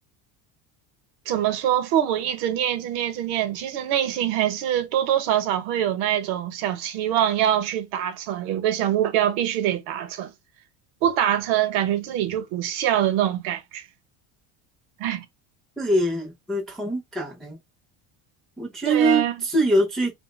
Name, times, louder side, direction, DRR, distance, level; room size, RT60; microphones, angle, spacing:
voice 1, 1.3-10.3 11.0-13.8 15.0-15.2 18.9-19.4, right 11 dB, 70° right, 0.8 m, -24 dB
voice 2, 15.8-17.6 18.6-20.1, right 1 dB, ahead, 0.4 m, -23 dB
2.7 x 2.1 x 3.0 m
cardioid pair, 160°, 43 cm